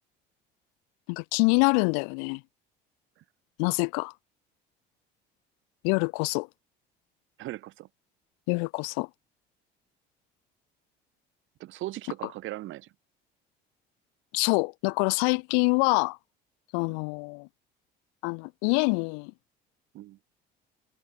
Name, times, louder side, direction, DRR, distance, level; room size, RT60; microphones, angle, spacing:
voice 1, 1.1-2.4 3.6-4.1 5.8-6.5 8.5-9.1 14.3-16.2 16.7-17.5 18.2-19.3, left 40 dB or more, 85° left, 1.6 m, -25 dB
voice 2, 7.4-7.9 11.6-12.9 19.9-20.2, right 16 dB, 70° right, 6.0 m, -38 dB
supercardioid pair, 75°, 21 cm